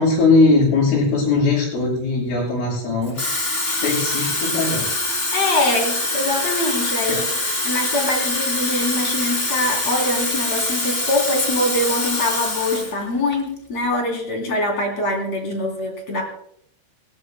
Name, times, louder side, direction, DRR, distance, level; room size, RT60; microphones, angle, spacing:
voice 1, 0.0-3.4 3.7-4.9 7.1-7.2, left 3 dB, 85° left, -8 dB, 8.8 m, -19 dB
Water tap faucet / Fill (with liquid), 3.0-12.9 13.3-13.6, left 2 dB, 20° left, 1.8 m, -24 dB
voice 2, 5.3-16.2, left 2 dB, 35° left, 1 dB, 4.0 m, -23 dB
29.0 x 14.0 x 2.2 m, 0.70 s
omnidirectional pair, 5.6 m